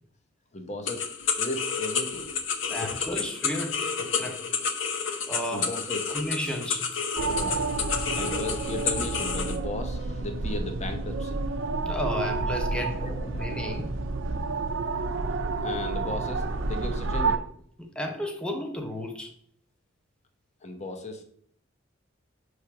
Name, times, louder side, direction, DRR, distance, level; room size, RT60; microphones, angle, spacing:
voice 1, 0.5-1.1 1.4-2.3 2.8-3.0 5.5-6.2 7.3-7.7 8.2-11.4 13.0-13.6 15.6-17.4 20.6-21.2, left 2 dB, 35° left, 6 dB, 0.9 m, -36 dB
sound 1, 0.9-9.6, left 6 dB, 75° left, 0.7 m, -30 dB
voice 2, 2.7-4.4 5.3-5.7 6.1-6.8 11.9-13.0 13.4-13.9 17.8-19.3, equal, 5° left, 2 dB, 0.8 m, -33 dB
sound 2, 7.2-17.4, right 3 dB, 75° right, 0.6 m, -30 dB
5.7 x 3.3 x 5.8 m, 0.63 s
head